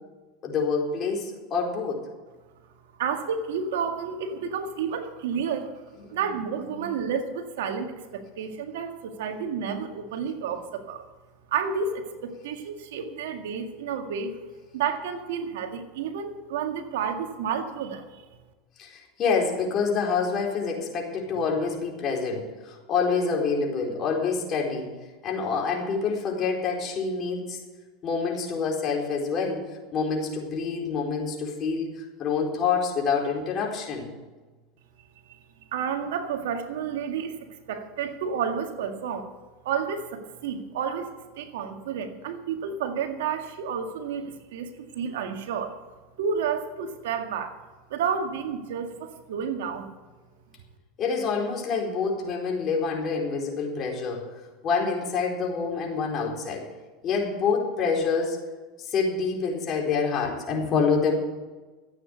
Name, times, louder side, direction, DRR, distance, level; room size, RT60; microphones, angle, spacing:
voice 1, 0.4-2.0 6.1-6.2 6.7-6.9 18.8-25.0 25.2-27.6 28.0-34.1 51.0-54.3 54.6-56.7 57.0-58.4 58.8-61.2, left 5 dB, 40° left, 0 dB, 4.2 m, -27 dB
voice 2, 3.0-5.8 6.1-11.0 11.5-14.4 14.7-18.2 35.3-35.4 35.7-39.3 39.6-41.1 41.4-45.8 46.2-47.6 47.9-49.9, right 6 dB, 85° right, 5 dB, 1.9 m, -31 dB
14.0 x 8.9 x 8.0 m, 1.3 s
supercardioid pair, 115°, 0 cm